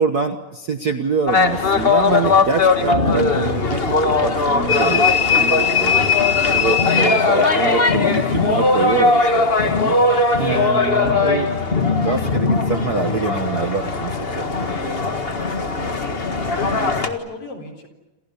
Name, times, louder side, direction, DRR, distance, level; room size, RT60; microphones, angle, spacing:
voice 1, 0.0-6.1 6.5-9.9 10.3-11.5 11.9-14.9, right 5 dB, 85° right, 8 dB, 0.8 m, -25 dB
sound 1, 1.3-17.1, left 3 dB, 30° left, 1.1 m, -19 dB
sound 2, 4.7-8.0, left 8 dB, 65° left, 0.8 m, -20 dB
voice 2, 16.4-17.9, left 4 dB, 45° left, 5 dB, 4.8 m, -35 dB
28.0 x 28.0 x 7.0 m, 1.0 s
omnidirectional pair, 3.7 m